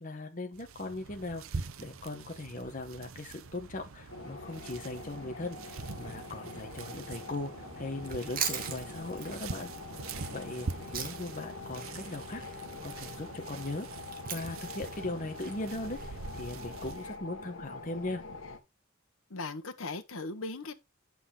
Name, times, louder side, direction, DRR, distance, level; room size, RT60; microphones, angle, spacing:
voice 1, 0.0-9.7 10.3-10.7 10.9-12.4 12.8-13.9 14.3-18.2, left 2 dB, 40° left, 1.4 m, -39 dB
sound 1, 0.5-17.2, right 4 dB, 85° right, 0.8 m, -44 dB
sound 2, 4.1-18.6, left 3 dB, 70° left, 1.8 m, -45 dB
Chewing mastication, 8.0-11.4 11.7-16.1, right 8 dB, 45° right, 1.7 m, -40 dB
voice 2, 19.3-20.7, left 3 dB, 90° left, 1.2 m, -38 dB
9.1 x 6.1 x 3.8 m
head